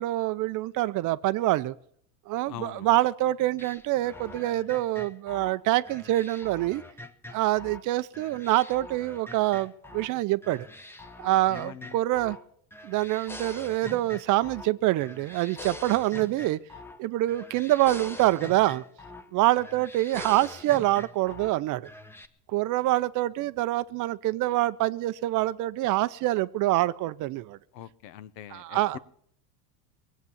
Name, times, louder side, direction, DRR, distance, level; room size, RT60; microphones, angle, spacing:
voice 1, 0.0-1.7 2.3-6.8 7.3-10.7 11.2-12.4 12.8-16.6 17.0-18.8 19.3-21.8 22.5-27.6 28.5-29.0, right 16 dB, 40° right, 15 dB, 0.5 m, -26 dB
voice 2, 2.5-3.0 11.5-12.0 27.7-29.0, left 10 dB, 80° left, 15 dB, 1.0 m, -43 dB
sound 1, 3.6-7.9 8.1-10.1 10.4-12.4 12.7-14.7 15.0-17.0 17.3-19.3 19.6-21.5 21.8-22.3, left 2 dB, 5° left, 0.7 m, -44 dB
20.5 x 8.2 x 7.1 m, 0.66 s
supercardioid pair, 105°, 49 cm